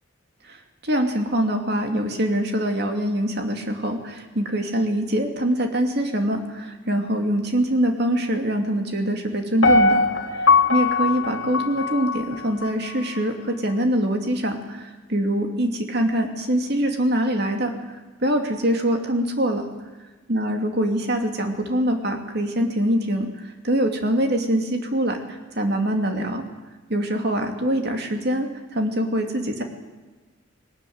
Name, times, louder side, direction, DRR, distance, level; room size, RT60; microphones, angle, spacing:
voice 1, 0.4-10.0 10.3-10.4 10.7-17.9 18.2-19.6 20.3-26.4 26.9-29.6, right 1 dB, 50° right, 4 dB, 2.8 m, -24 dB
Piano, 9.6-12.7 13.2-13.3, left 3 dB, 75° left, 1.6 m, -20 dB
20.0 x 20.0 x 9.6 m, 1.3 s
head